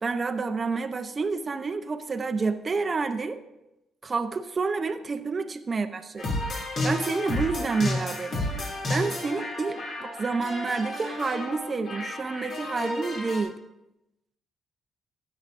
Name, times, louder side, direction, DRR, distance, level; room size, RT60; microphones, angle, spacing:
voice 1, 0.0-3.4 4.0-6.4 6.8-13.6, right 4 dB, 35° right, 7 dB, 0.6 m, -29 dB
sound 1, 6.2-13.4, left 2 dB, 60° left, 2.4 m, -32 dB
15.5 x 9.4 x 2.6 m, 0.93 s
cardioid pair, 90°, 0 cm